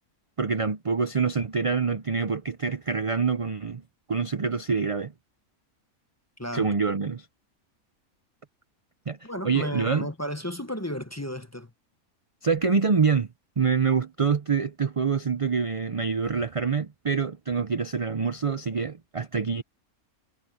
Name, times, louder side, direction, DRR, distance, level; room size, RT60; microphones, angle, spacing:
voice 1, 0.4-3.8 4.1-5.1 6.5-7.3 9.1-9.2 9.4-10.1 12.4-13.3 13.6-19.6, right 5 dB, 40° right, 0.5 m, -26 dB
voice 2, 6.4-6.7 9.2-11.7, left 1 dB, 10° left, 0.9 m, -33 dB
omnidirectional pair, 1.5 m